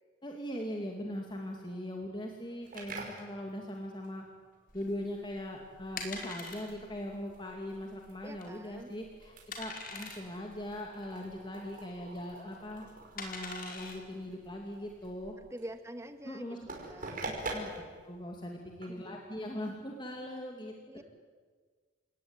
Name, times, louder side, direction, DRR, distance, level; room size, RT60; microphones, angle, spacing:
voice 1, 0.2-4.3 4.7-12.9 13.1-15.3 16.2-16.6 17.3-20.7, left 1 dB, 25° left, 1 dB, 2.6 m, -40 dB
sound 1, 2.6-20.3, right 2 dB, 45° right, 5.8 m, -47 dB
sound 2, 4.7-15.3, left 3 dB, 50° left, 4.9 m, -46 dB
voice 2, 8.2-8.9 15.4-16.6 16.9-17.9 18.9-19.3 20.9-21.0, right 1 dB, 15° right, 8 dB, 1.7 m, -47 dB
29.5 x 18.5 x 9.9 m, 1.5 s
head